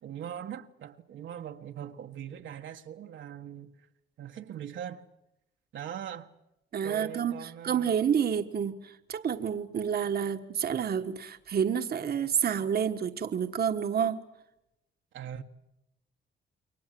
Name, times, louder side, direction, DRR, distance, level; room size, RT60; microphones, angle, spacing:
voice 1, 0.0-3.7 4.2-5.0 5.7-6.3 6.8-8.0 15.1-15.4, right 9 dB, 70° right, 1.6 m, -41 dB
voice 2, 6.7-14.2, right 8 dB, 50° right, 1.5 m, -29 dB
28.5 x 23.0 x 7.7 m
cardioid pair, 90°, 20 cm